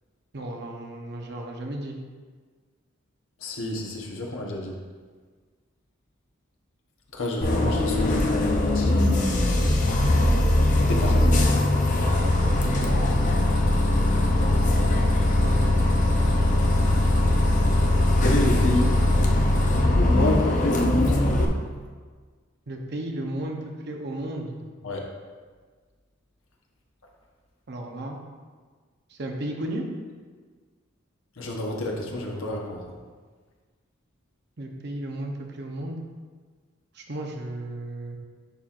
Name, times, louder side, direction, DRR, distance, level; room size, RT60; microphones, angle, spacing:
voice 1, 0.3-2.0 12.2-13.1 15.4-15.7 22.7-24.6 27.7-28.2 29.1-29.9 34.6-36.0 36.9-38.2, right 1 dB, 55° right, 2 dB, 0.8 m, -34 dB
voice 2, 3.4-4.8 7.1-9.1 10.8-11.3 13.9-14.0 18.2-19.0 19.9-21.1 24.8-25.0 31.4-32.8, left 1 dB, 85° left, -1 dB, 1.0 m, -29 dB
Bus, 7.4-21.4, left 1 dB, 40° left, 0.7 m, -21 dB
10.5 x 4.3 x 2.5 m, 1.5 s
head